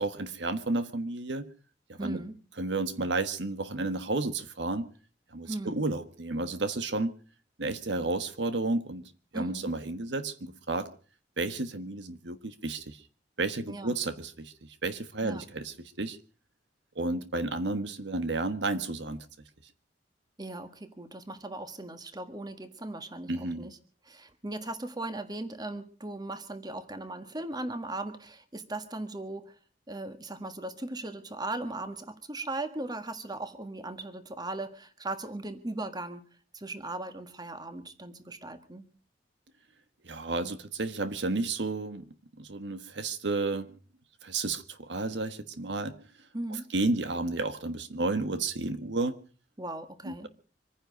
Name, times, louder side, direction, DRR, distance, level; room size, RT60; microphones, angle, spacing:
voice 1, 0.0-1.5 1.9-2.2 2.6-4.9 5.3-7.1 7.6-9.0 9.3-10.9 11.4-13.0 13.4-16.2 16.9-19.3 23.3-23.7 40.0-42.0 42.4-43.7 44.2-46.0 46.7-49.2 50.0-50.3, right 2 dB, 85° right, 1.3 m, -32 dB
voice 2, 2.0-2.4 5.4-5.8 9.3-9.7 13.7-14.0 15.2-15.4 20.4-23.8 24.0-29.6 29.9-36.3 36.5-38.9 46.3-46.7 49.6-50.3, right 2 dB, 25° right, 1.6 m, -38 dB
25.5 x 10.0 x 5.1 m
head